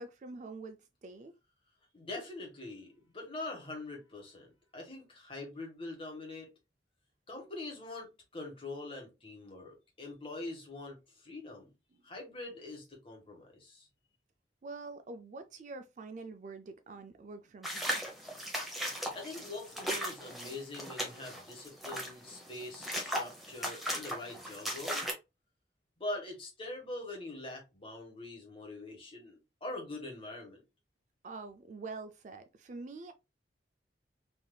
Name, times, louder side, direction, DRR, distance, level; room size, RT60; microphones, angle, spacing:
voice 1, 0.0-1.3 11.9-12.0 14.6-18.1 31.2-33.1, right 3 dB, 40° right, 0.3 m, -46 dB
voice 2, 1.9-6.5 7.3-11.7 12.0-13.9 19.1-25.0 26.0-30.6, left 2 dB, 30° left, 1.2 m, -43 dB
sound 1, 17.6-25.1, equal, ahead, 0.8 m, -37 dB
3.4 x 2.7 x 2.2 m
head